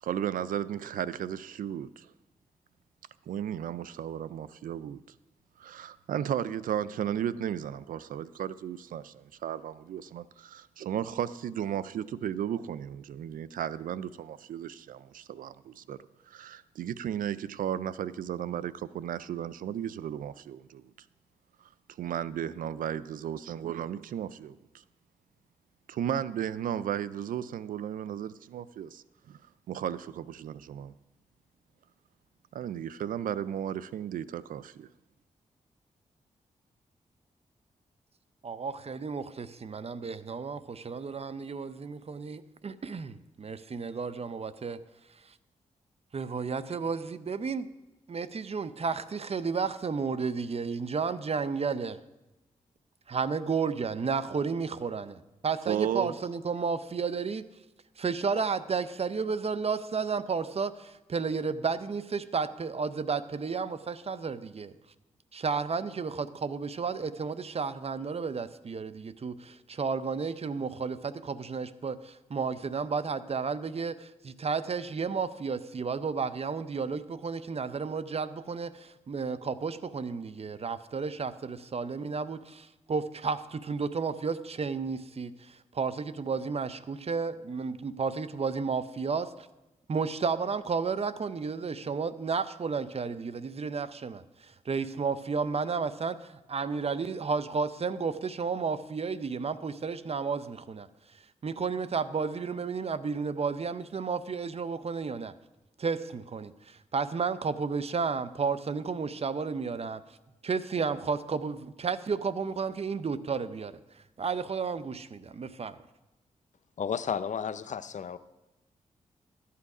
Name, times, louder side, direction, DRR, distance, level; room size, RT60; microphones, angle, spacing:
voice 1, 0.0-2.1 3.3-5.0 5.6-16.0 16.3-20.9 21.6-21.7 22.0-24.6 25.9-30.9 32.5-34.9 55.6-56.1, right 10 dB, 75° right, 17 dB, 0.4 m, -34 dB
voice 2, 38.4-44.8 46.1-47.7 48.1-52.0 53.1-57.4 58.0-64.7 65.3-89.5 89.9-100.9 101.4-105.3 105.8-110.0 110.4-113.7 114.2-115.8, right 5 dB, 45° right, 14 dB, 0.7 m, -32 dB
voice 3, 116.8-118.2, left 7 dB, 60° left, 14 dB, 0.6 m, -32 dB
13.0 x 8.5 x 4.9 m, 0.99 s
cardioid pair, 50°, 14 cm